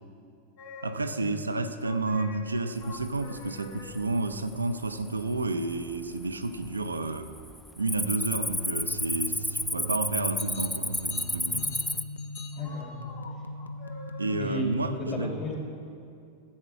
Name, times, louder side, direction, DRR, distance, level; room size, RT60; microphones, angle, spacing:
sound 1, 0.6-1.3 1.8-4.3 10.4-14.8, left 3 dB, 50° left, 1.1 m, -47 dB
voice 1, 0.8-7.3 7.8-11.6 14.2-15.4, right 2 dB, 80° right, 9 dB, 0.5 m, -31 dB
Cricket, 3.0-3.5 3.9-4.4 5.0-5.1 5.7-6.3 6.5-6.8 7.2-12.0, left 1 dB, 5° left, 0.3 m, -31 dB
sound 2, 8.1-15.0, equal, 75° left, 0.5 m, -39 dB
voice 2, 12.5-13.0 14.3-14.7 15.0-15.5, left 2 dB, 30° left, -2 dB, 3.2 m, -34 dB
14.5 x 8.1 x 4.6 m, 2.4 s
figure-of-eight pair, 90°, 0 cm